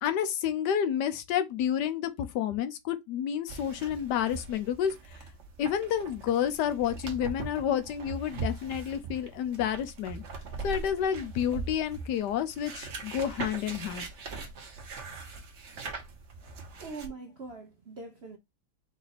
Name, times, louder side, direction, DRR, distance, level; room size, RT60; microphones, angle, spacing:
voice 1, 0.0-5.2 5.6-10.2 10.6-14.0, left 9 dB, 65° left, 1.2 m, -30 dB
sound 1, 3.5-17.1, right 4 dB, 45° right, 1.0 m, -41 dB
voice 2, 16.8-18.4, right 4 dB, 70° right, 0.6 m, -42 dB
4.8 x 2.6 x 4.0 m
omnidirectional pair, 2.2 m